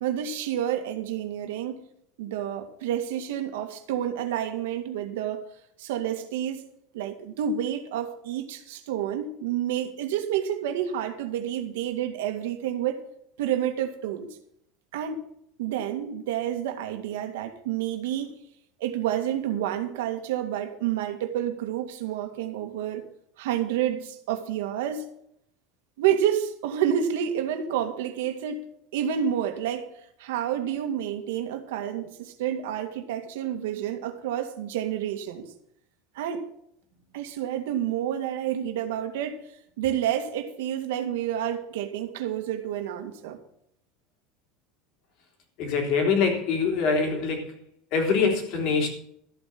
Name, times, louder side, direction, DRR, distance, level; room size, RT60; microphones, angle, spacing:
voice 1, 0.0-1.8 2.2-5.4 5.8-6.7 6.9-13.0 13.4-14.3 14.9-15.2 15.6-18.4 18.8-23.0 23.4-25.0 26.0-28.6 28.9-29.9 30.2-35.5 36.2-36.4 37.1-39.4 39.8-43.4, right 10 dB, 85° right, 2.1 m, -29 dB
voice 2, 45.6-47.6 47.9-48.9, left 5 dB, 45° left, 3.5 m, -24 dB
14.0 x 8.7 x 6.1 m
cardioid pair, 180°, 0 cm